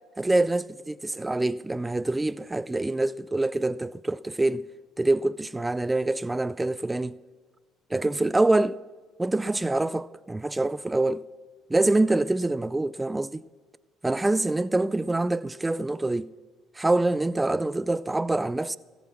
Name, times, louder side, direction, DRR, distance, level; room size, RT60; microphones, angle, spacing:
voice 1, 0.2-4.6 5.0-7.2 7.9-8.8 9.2-11.2 11.7-13.4 14.0-16.3 16.8-18.8, right 2 dB, 15° right, 0.3 m, -25 dB
16.5 x 8.0 x 5.9 m
hypercardioid pair, 55°, 0 cm